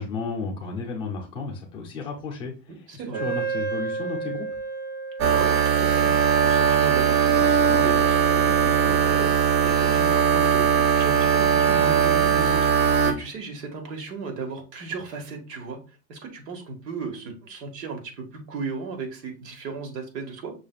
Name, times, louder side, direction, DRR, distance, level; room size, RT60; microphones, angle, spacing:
voice 1, 0.0-4.5, left 4 dB, 10° left, -1 dB, 0.5 m, -33 dB
voice 2, 2.9-3.3 5.2-6.1 6.4-9.3 9.6-12.7 13.1-15.8 16.1-20.5, right 4 dB, 75° right, 3 dB, 1.8 m, -35 dB
Wind instrument woodwind instrument, 3.1-10.5, right 5 dB, 25° right, 0.8 m, -35 dB
sound 1, 5.2-13.1, right 7 dB, 50° right, 1.0 m, -20 dB
6.2 x 3.5 x 2.3 m, 0.32 s
supercardioid pair, 165°, 49 cm